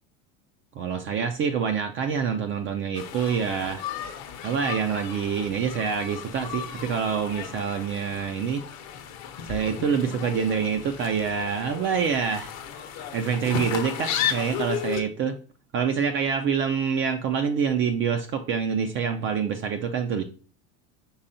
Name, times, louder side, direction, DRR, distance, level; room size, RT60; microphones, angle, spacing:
voice 1, 0.8-3.8 4.4-8.6 9.5-12.5 13.1-15.4 15.7-20.2, right 6 dB, 35° right, 7 dB, 0.4 m, -26 dB
sound 1, 2.9-15.0, left 9 dB, 45° left, 0.7 m, -34 dB
5.5 x 3.3 x 2.6 m, 0.38 s
hypercardioid pair, 100°, 40 cm